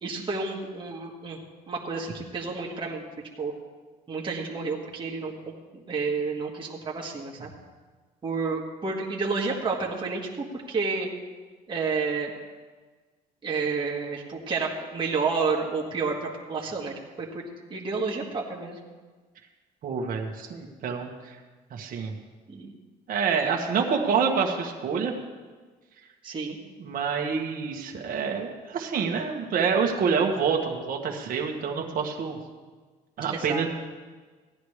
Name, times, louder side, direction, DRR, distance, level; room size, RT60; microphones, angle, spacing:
voice 1, 0.0-1.4 1.7-3.0 3.4-3.5 4.1-5.3 5.7-7.5 8.2-11.1 11.7-12.3 13.4-16.9 17.2-18.8 22.5-22.8 26.2-26.6 33.3-33.6, right 4 dB, 30° right, -2 dB, 1.7 m, -30 dB
voice 2, 19.8-21.1 21.7-22.1 23.1-25.1 26.8-32.4 33.2-33.7, right 6 dB, 55° right, 1 dB, 1.6 m, -27 dB
16.0 x 10.5 x 3.3 m, 1.4 s
cardioid pair, 110°, 17 cm